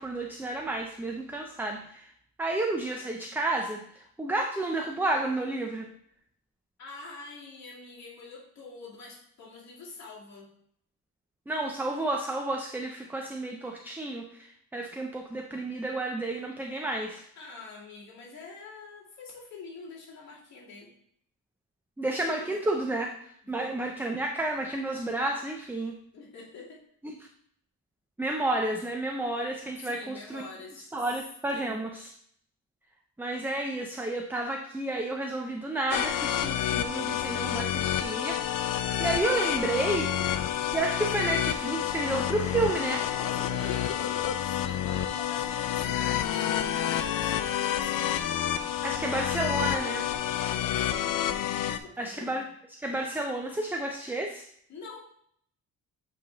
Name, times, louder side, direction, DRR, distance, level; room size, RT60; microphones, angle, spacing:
voice 1, 0.0-2.1 2.4-5.9 11.5-17.2 22.0-23.1 23.5-26.0 27.0-27.2 28.2-30.4 30.9-32.1 33.2-40.1 40.7-43.1 48.8-50.1 52.0-52.4 52.8-54.4, right 2 dB, 5° right, 2 dB, 0.4 m, -31 dB
voice 2, 6.8-10.5 17.4-20.9 22.1-22.6 23.6-23.8 26.1-26.8 29.8-30.9 31.5-31.8 43.3-48.5 50.4-51.1 51.6-52.5 54.7-55.0, left 3 dB, 50° left, -6 dB, 2.3 m, -45 dB
sound 1, 35.9-51.8, left 11 dB, 65° left, 0.5 m, -29 dB
8.0 x 3.3 x 3.8 m, 0.65 s
wide cardioid pair, 160°, 35 cm